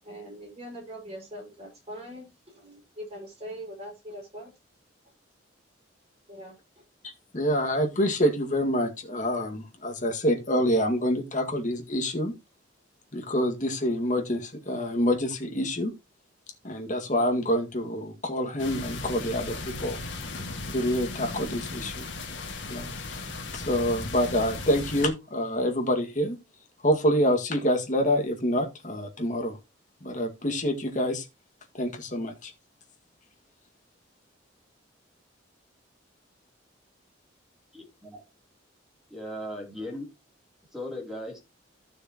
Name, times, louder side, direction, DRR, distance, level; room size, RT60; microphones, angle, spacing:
voice 1, 0.0-4.5 6.3-6.8, equal, 30° right, -1 dB, 5.8 m, -42 dB
voice 2, 7.0-12.3 13.1-15.9 16.6-20.0 20.7-22.0 22.7-22.9 23.5-26.4 26.8-29.6 30.0-31.2 31.8-32.5, equal, 40° left, 3 dB, 2.0 m, -27 dB
sound 1, 18.6-25.1, left 3 dB, 65° left, 2.2 m, -36 dB
voice 3, 37.7-38.2 39.1-40.1 40.7-41.4, left 1 dB, ahead, -2 dB, 3.3 m, -37 dB
15.0 x 6.6 x 3.0 m, 0.25 s
head